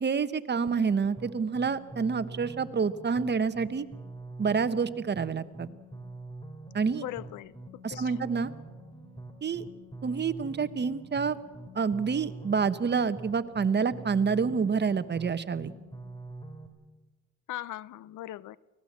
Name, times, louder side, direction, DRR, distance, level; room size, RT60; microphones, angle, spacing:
voice 1, 0.0-3.8 4.4-5.7 6.7-7.0 7.8-8.5 9.4-9.6 10.0-11.4 11.7-15.7, right 5 dB, 35° right, 1.2 m, -28 dB
sound 1, 0.7-16.7, right 2 dB, 15° left, 2.8 m, -45 dB
voice 2, 7.0-7.5 7.9-8.3 17.5-18.6, left 14 dB, 80° left, 0.7 m, -39 dB
24.5 x 17.5 x 7.4 m
cardioid pair, 90°, 30 cm